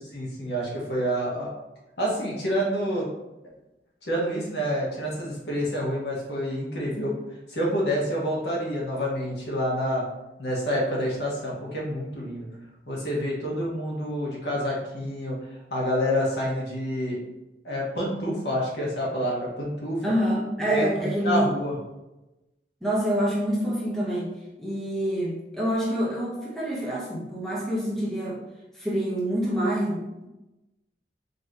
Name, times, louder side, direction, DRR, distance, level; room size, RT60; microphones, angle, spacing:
voice 1, 0.1-1.5 2.0-3.1 4.0-7.2 7.5-10.0 10.4-12.5 12.9-15.4 15.7-17.2 17.6-20.0 20.7-21.8, equal, 75° left, -4 dB, 1.4 m, -28 dB
voice 2, 20.0-21.5 22.8-24.3 24.6-28.4 28.7-30.3, equal, ahead, -6 dB, 1.0 m, -27 dB
5.2 x 3.1 x 2.9 m, 0.98 s
head